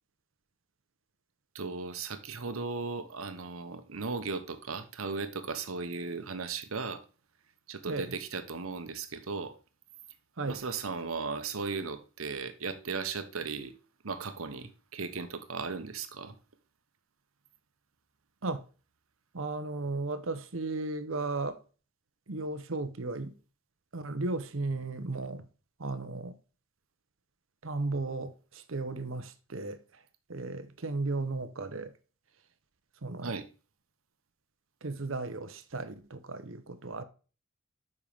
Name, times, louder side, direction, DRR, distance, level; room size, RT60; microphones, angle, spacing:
voice 1, 1.5-7.0 7.7-9.5 10.4-13.7 14.0-16.3 33.2-33.5, right 4 dB, 90° right, 1.1 m, -36 dB
voice 2, 19.3-21.6 22.3-23.4 23.9-25.5 25.8-26.4 27.6-30.0 30.3-31.9 33.0-33.3 34.8-37.0, right 3 dB, 70° right, 0.9 m, -35 dB
7.5 x 5.5 x 3.5 m
head